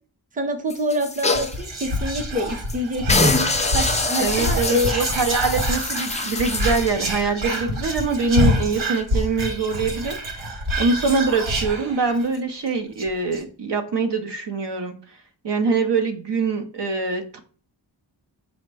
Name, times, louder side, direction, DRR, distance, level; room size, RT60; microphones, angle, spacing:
voice 1, 0.3-4.9, equal, 15° right, 5 dB, 0.7 m, -26 dB
sound 1, 0.7-1.6 2.0-2.1 2.5-2.7 3.1-7.0 7.5-7.6, left 3 dB, 15° left, 0.3 m, -24 dB
Whispering, 1.3-12.4 12.7-12.8 13.0-13.4, equal, 80° right, 1.1 m, -26 dB
voice 2, 4.2-10.5 10.8-15.2 15.4-17.4, right 4 dB, 65° right, 5 dB, 0.7 m, -24 dB
5.0 x 2.1 x 4.6 m, 0.42 s
wide cardioid pair, 105°, 46 cm